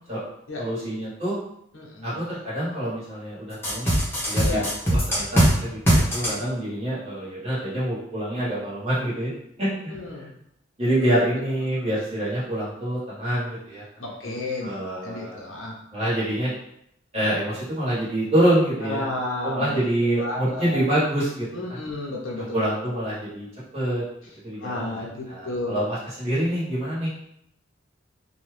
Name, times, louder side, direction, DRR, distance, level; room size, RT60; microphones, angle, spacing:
voice 1, 0.6-1.4 2.0-4.0 4.2-9.3 9.6-9.9 10.8-13.8 14.2-15.4 15.9-16.5 17.1-19.1 19.4-21.5 22.5-23.5 23.7-24.0 24.4-27.1, right 1 dB, 35° right, -9 dB, 1.5 m, -26 dB
voice 2, 1.7-2.2 4.4-4.7 6.2-6.4 9.9-10.3 11.8-11.9 14.0-14.7 15.0-15.8 18.8-19.7 20.2-20.8 21.5-22.6 24.6-25.7, left 2 dB, 80° left, -3 dB, 0.9 m, -32 dB
sound 1, 3.6-5.5 5.9-6.3, right 1 dB, 10° left, 0.9 m, -19 dB
2.8 x 2.4 x 3.3 m, 0.75 s
head